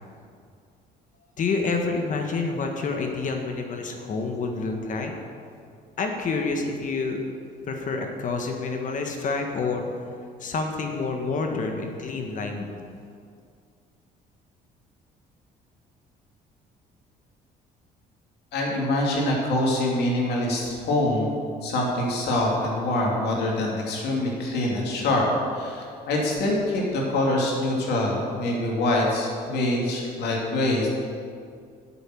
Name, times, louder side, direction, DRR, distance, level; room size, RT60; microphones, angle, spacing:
voice 1, 1.4-5.1 6.0-7.2 7.7-9.8 10.4-12.7, left 4 dB, 50° left, 3 dB, 1.5 m, -28 dB
voice 2, 18.5-21.3 21.6-25.3 25.5-30.9, left 1 dB, 75° left, -2 dB, 2.7 m, -25 dB
8.8 x 7.3 x 7.7 m, 2.3 s
cardioid pair, 110°, 17 cm